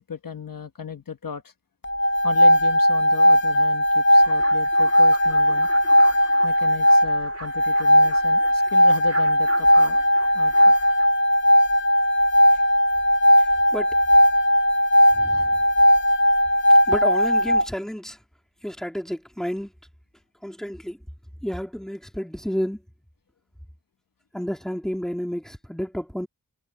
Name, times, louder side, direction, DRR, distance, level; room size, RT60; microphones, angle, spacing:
voice 1, 0.0-1.5 2.2-5.7 6.4-10.1 10.3-10.8 12.5-12.6 15.3-15.5, left 6 dB, 65° left, 1.2 m, -36 dB
sound 1, 1.8-17.7, equal, 30° left, 0.8 m, -18 dB
sound 2, 4.1-11.1, right 3 dB, 40° right, 2.0 m, -42 dB
voice 2, 15.1-15.6 16.9-18.2 18.6-19.7 20.4-21.0 21.4-22.8 24.3-26.3, equal, ahead, 2.6 m, -30 dB
wide cardioid pair, 90°, 37 cm